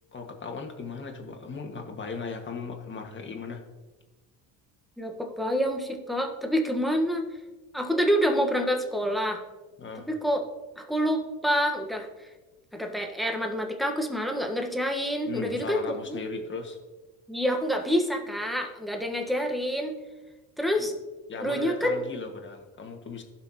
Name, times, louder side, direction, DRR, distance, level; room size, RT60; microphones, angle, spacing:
voice 1, 0.1-3.6 9.8-10.1 15.2-16.8 20.8-20.9 21.3-23.2, left 4 dB, 30° left, 3 dB, 1.8 m, -37 dB
voice 2, 5.0-7.3 7.7-9.4 10.1-10.4 10.8-12.1 12.7-16.2 17.3-19.9 20.6-20.9 21.4-22.0, equal, ahead, 3 dB, 1.4 m, -27 dB
15.0 x 6.0 x 3.0 m, 1.2 s
supercardioid pair, 85°, 40 cm